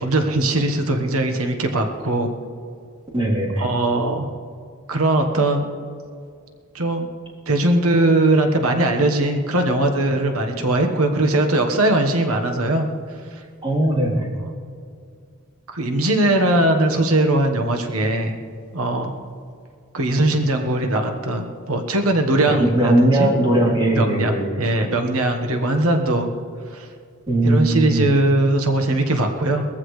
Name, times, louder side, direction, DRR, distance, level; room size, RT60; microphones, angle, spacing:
voice 1, 0.0-2.3 3.6-4.3 4.9-5.7 6.7-7.1 7.5-12.9 15.7-18.4 18.7-19.1 19.9-23.3 24.0-26.3 26.7-26.9 27.4-29.6, right 1 dB, 90° right, 4 dB, 1.3 m, -20 dB
voice 2, 3.1-3.7 13.6-14.3 22.5-24.6 27.3-28.1, right 1 dB, 25° right, -6 dB, 3.4 m, -19 dB
20.5 x 15.0 x 3.3 m, 2.3 s
head